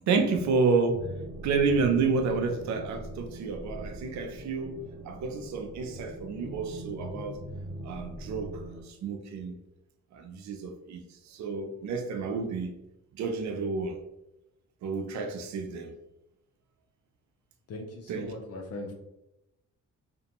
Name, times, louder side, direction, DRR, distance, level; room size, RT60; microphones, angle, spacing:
voice 1, 0.1-1.1 1.4-7.4 7.8-9.6 10.1-12.7 13.1-14.0 14.8-15.9 18.1-18.3, right 4 dB, 65° right, 0.5 m, -30 dB
sound 1, 0.9-8.8, right 1 dB, 5° right, 1.4 m, -42 dB
voice 2, 17.7-18.9, left 2 dB, 55° left, 0.6 m, -39 dB
2.5 x 2.1 x 2.8 m
cardioid pair, 90°, 30 cm